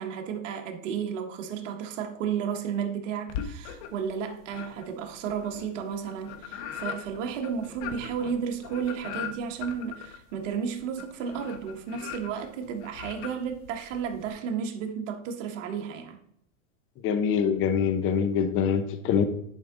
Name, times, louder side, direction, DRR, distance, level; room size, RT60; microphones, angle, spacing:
voice 1, 0.0-16.2, right 7 dB, 65° right, 1.4 m, -33 dB
sound 1, 3.3-4.1 4.5-14.3, left 8 dB, 55° left, 1.2 m, -40 dB
voice 2, 17.0-19.3, left 7 dB, 30° left, 0.8 m, -24 dB
10.5 x 4.7 x 3.8 m
supercardioid pair, 135°, 40 cm